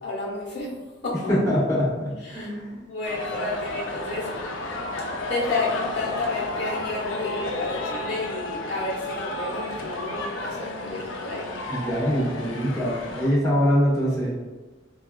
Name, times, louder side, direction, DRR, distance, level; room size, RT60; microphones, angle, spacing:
voice 1, 0.0-1.2 2.2-2.5 2.8-4.7 5.3-11.5, left 3 dB, 60° left, -4 dB, 1.0 m, -31 dB
voice 2, 1.3-2.7 11.7-14.3, equal, 15° left, -9 dB, 0.8 m, -23 dB
sound 1, 3.0-13.3, left 2 dB, 80° left, 0.4 m, -32 dB
4.2 x 2.3 x 2.2 m, 1.3 s
head